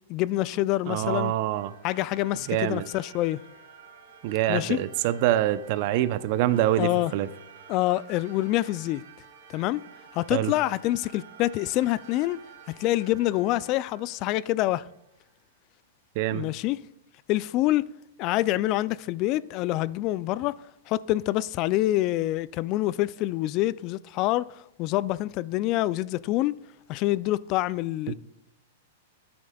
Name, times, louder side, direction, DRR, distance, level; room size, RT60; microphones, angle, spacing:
voice 1, 0.1-1.3 1.8-3.4 4.5-4.8 6.8-7.1 7.7-9.0 9.5-9.8 10.1-12.4 12.7-14.8 16.3-16.8 17.3-17.9 18.2-20.5 20.9-24.5 24.8-26.6 26.9-28.1, left 16 dB, 45° left, 0.3 m, -26 dB
voice 2, 0.9-1.7 2.5-2.8 4.2-7.3 10.3-10.5 16.2-16.5 28.1-28.2, right 13 dB, 50° right, 0.6 m, -25 dB
sound 1, 1.5-15.3, right 6 dB, 70° right, 1.7 m, -51 dB
12.5 x 8.7 x 2.3 m
hypercardioid pair, 115°, 0 cm